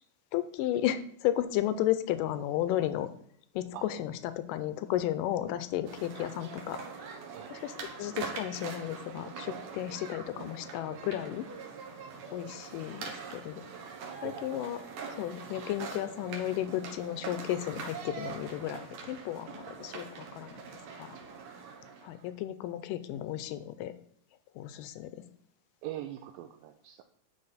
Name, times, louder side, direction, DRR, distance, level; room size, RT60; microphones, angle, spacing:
voice 1, 0.3-3.1 3.6-6.8 7.5-11.5 12.3-13.6 14.2-14.8 15.1-20.1 20.3-20.6 21.0-21.2 22.0-23.9 24.6-25.1, left 12 dB, 80° left, 12 dB, 2.1 m, -33 dB
sound 1, 5.8-22.3, right 5 dB, 65° right, 2.0 m, -43 dB
voice 2, 25.8-27.0, right 13 dB, 85° right, 5 dB, 2.3 m, -42 dB
11.0 x 4.1 x 4.1 m, 0.68 s
omnidirectional pair, 4.2 m